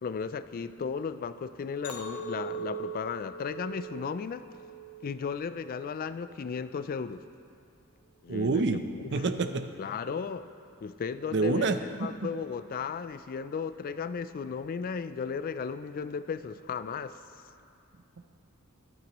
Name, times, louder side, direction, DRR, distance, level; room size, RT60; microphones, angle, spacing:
voice 1, 0.0-4.4 5.0-7.2 8.2-9.0 9.8-10.5 10.8-17.2, left 6 dB, 40° left, 13 dB, 0.3 m, -35 dB
Chink clink, 1.8-6.2 6.6-7.1, right 4 dB, 90° left, 1.1 m, -41 dB
voice 2, 8.3-8.8 9.1-9.7 11.3-12.3, right 3 dB, 55° right, 9 dB, 0.6 m, -28 dB
23.5 x 8.9 x 3.0 m, 2.4 s
head